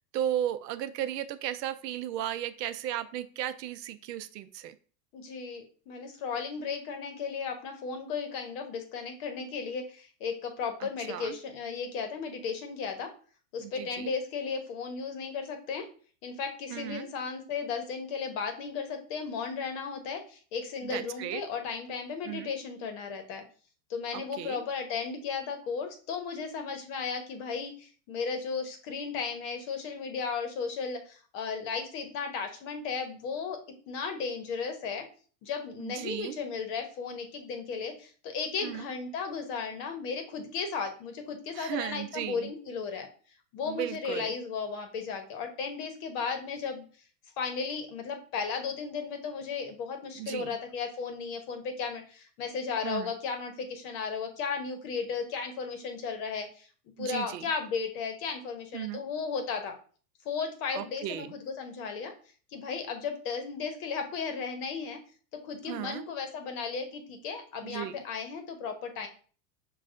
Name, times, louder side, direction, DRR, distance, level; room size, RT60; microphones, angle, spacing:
voice 1, 0.1-4.7 10.8-11.4 13.6-14.1 16.7-17.1 20.8-21.4 22.3-22.5 24.1-24.6 35.8-36.4 38.6-38.8 41.5-42.5 43.6-44.3 50.2-50.6 52.8-53.1 57.0-57.4 58.7-59.0 60.7-61.3 65.7-66.0 67.6-67.9, right 11 dB, 75° right, 12 dB, 0.5 m, -35 dB
voice 2, 5.1-13.1 13.5-15.9 16.2-23.4 23.9-33.6 33.9-35.0 35.4-43.1 43.5-46.8 47.4-56.7 57.0-59.7 60.2-62.1 62.5-65.0 65.4-69.1, left 5 dB, 50° left, 6 dB, 1.0 m, -35 dB
6.2 x 2.3 x 2.5 m, 0.40 s
hypercardioid pair, 110°, 49 cm